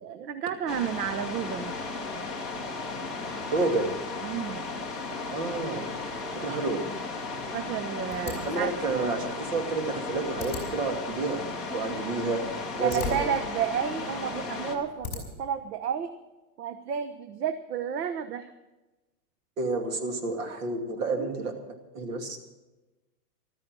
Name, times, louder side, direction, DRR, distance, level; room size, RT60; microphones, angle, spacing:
voice 1, 0.0-1.8 4.2-4.6 7.5-8.7 11.9-12.1 12.7-16.1 16.6-18.5 21.2-21.3, right 8 dB, 70° right, 10 dB, 1.1 m, -31 dB
sound 1, 0.7-14.8, left 3 dB, ahead, 0.9 m, -35 dB
voice 2, 3.5-3.9 5.3-5.9 6.4-6.9 8.3-12.4 12.7-13.3 19.6-21.5 21.9-22.4, right 3 dB, 50° right, 4 dB, 2.7 m, -30 dB
sound 2, 8.1-15.5, left 5 dB, 15° left, 4.3 m, -42 dB
14.5 x 13.5 x 6.2 m, 1.1 s
supercardioid pair, 180°, 49 cm